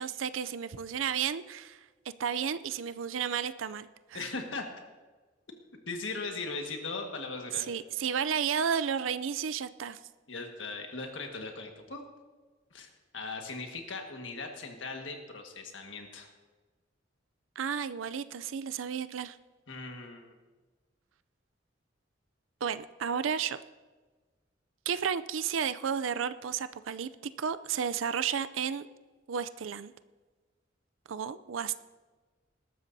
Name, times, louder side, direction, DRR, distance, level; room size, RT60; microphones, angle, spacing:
voice 1, 0.0-1.8 2.2-4.2 7.7-10.0 17.6-19.4 22.6-23.6 24.9-27.1 27.4-28.9 29.3-29.9 31.1-31.7, right 7 dB, 90° right, 14 dB, 0.5 m, -32 dB
voice 2, 4.1-4.7 5.9-7.7 10.3-12.0 12.7-16.3 19.7-20.3, left 3 dB, 70° left, 3 dB, 1.7 m, -39 dB
20.0 x 13.0 x 2.7 m, 1.3 s
head